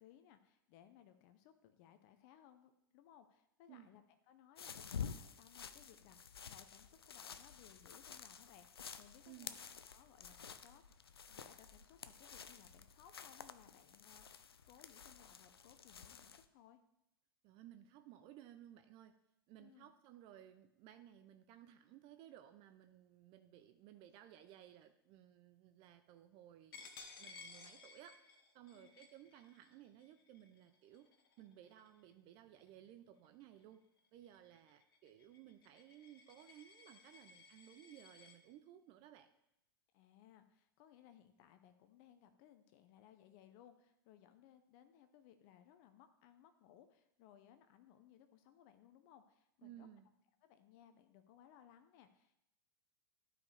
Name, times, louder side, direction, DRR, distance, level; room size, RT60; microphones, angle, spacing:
voice 1, 0.0-9.6 9.9-14.4 14.7-16.8 19.6-19.9 28.7-28.9 39.9-49.9 50.4-52.4, left 10 dB, 50° left, 9 dB, 0.7 m, -64 dB
sound 1, 4.6-16.5, left 7 dB, 90° left, 0.5 m, -51 dB
voice 2, 9.3-9.6 17.4-19.2 19.5-28.2 28.5-31.1 31.4-33.8 34.1-39.3 49.6-50.1, right 11 dB, 45° right, 9 dB, 0.6 m, -59 dB
Coin (dropping), 26.7-32.1 32.6-32.9 33.2-38.4, left 4 dB, 70° left, 1.3 m, -59 dB
11.5 x 5.0 x 3.4 m, 0.84 s
hypercardioid pair, 100°, 12 cm